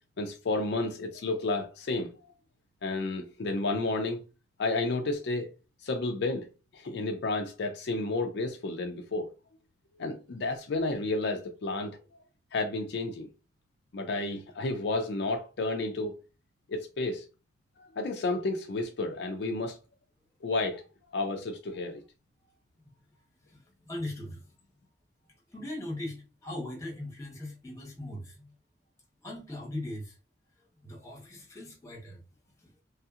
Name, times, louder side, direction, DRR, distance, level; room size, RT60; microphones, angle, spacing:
voice 1, 0.2-2.1 2.8-4.2 4.6-5.5 5.8-6.5 6.7-9.3 10.0-12.0 12.5-13.3 13.9-16.1 16.7-17.3 17.8-19.8 20.4-20.9 21.1-22.0, left 2 dB, 65° left, 0.4 m, -31 dB
voice 2, 23.1-24.4 25.3-28.5 29.2-30.2 30.6-32.2 32.6-32.7, left 1 dB, 15° left, 1.2 m, -40 dB
3.1 x 2.7 x 2.4 m
head